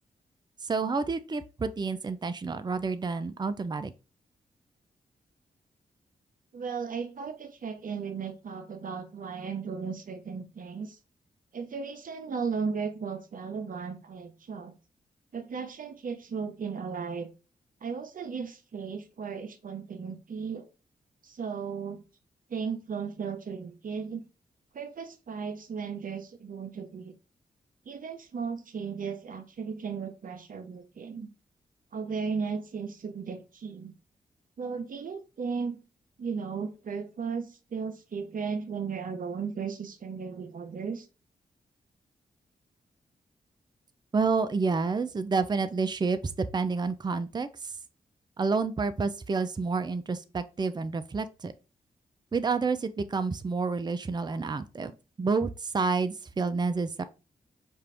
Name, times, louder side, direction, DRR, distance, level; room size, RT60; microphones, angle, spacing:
voice 1, 0.6-3.9 44.1-47.7 48.4-51.5 52.3-54.9 55.2-57.0, right 4 dB, 25° right, 0.5 m, -29 dB
voice 2, 6.5-11.0 11.5-14.7 15.3-17.3 17.8-20.7 21.2-22.0 22.5-24.2 24.7-27.1 27.9-31.3 31.9-33.9 34.6-35.8 36.2-41.1, right 5 dB, 60° right, 0.8 m, -35 dB
4.4 x 2.5 x 3.3 m
supercardioid pair, 45°, 16 cm